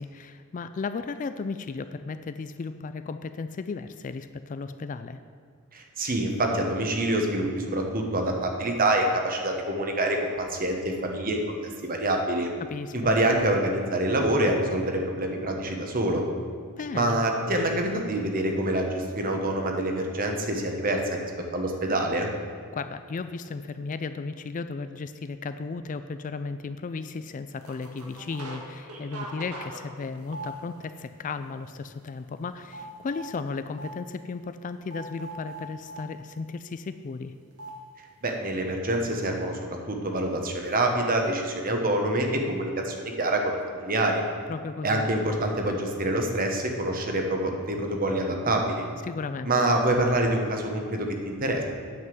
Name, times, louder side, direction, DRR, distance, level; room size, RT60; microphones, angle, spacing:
voice 1, 0.0-5.2 12.6-13.1 16.8-17.2 22.7-37.3 44.5-45.0 49.0-49.5, left 4 dB, 35° left, 11 dB, 0.3 m, -35 dB
voice 2, 5.7-12.5 12.9-16.2 16.9-21.0 21.5-22.3 38.2-39.6 39.9-44.2 44.8-48.9 49.4-51.6, right 1 dB, 40° right, 3 dB, 1.3 m, -26 dB
teclas e interferencia celular, 27.6-28.6 28.9-31.0 31.4-31.7 31.9-33.3 33.8-33.9 34.9-36.0 37.6-37.7, right 2 dB, 80° right, 1.7 m, -40 dB
9.4 x 5.6 x 7.8 m, 2.2 s
head